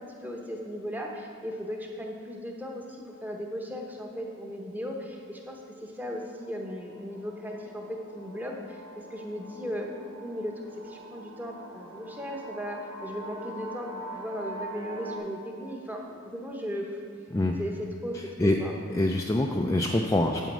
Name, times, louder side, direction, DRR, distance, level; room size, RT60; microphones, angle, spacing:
voice 1, 0.0-9.9 10.2-17.0 17.6-18.2 18.4-18.7, equal, 10° right, 0 dB, 0.8 m, -37 dB
sound 1, 6.2-15.2, right 1 dB, 80° right, 1.2 m, -44 dB
voice 2, 18.9-20.5, left 1 dB, 15° left, 1 dB, 0.3 m, -25 dB
9.2 x 5.2 x 7.4 m, 2.3 s
head